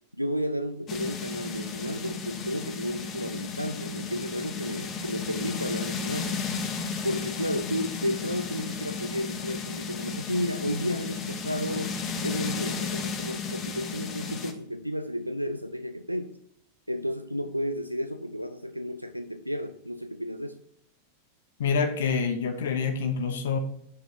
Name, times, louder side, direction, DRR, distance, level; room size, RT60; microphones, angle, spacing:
voice 1, 0.1-6.4 7.0-12.0 12.2-16.4 16.9-20.6, equal, 90° right, 10 dB, 0.4 m, -32 dB
sound 1, 0.9-14.5, left 5 dB, 30° left, 0.9 m, -34 dB
voice 2, 21.6-23.6, left 5 dB, 60° left, 7 dB, 0.8 m, -26 dB
6.1 x 5.1 x 5.4 m, 0.73 s
figure-of-eight pair, 90°, 0 cm